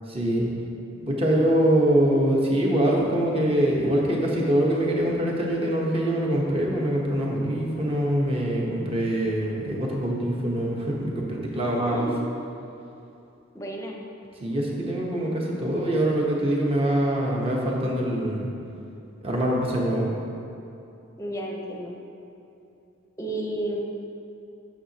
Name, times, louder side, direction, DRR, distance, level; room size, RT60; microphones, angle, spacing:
voice 1, 0.1-0.5 1.1-12.1 14.4-18.5 19.2-20.1, right 1 dB, 30° right, -2 dB, 1.0 m, -24 dB
voice 2, 13.5-14.0 21.2-21.9 23.2-23.8, right 1 dB, 15° left, 0 dB, 0.7 m, -31 dB
8.8 x 7.2 x 2.9 m, 2.7 s
head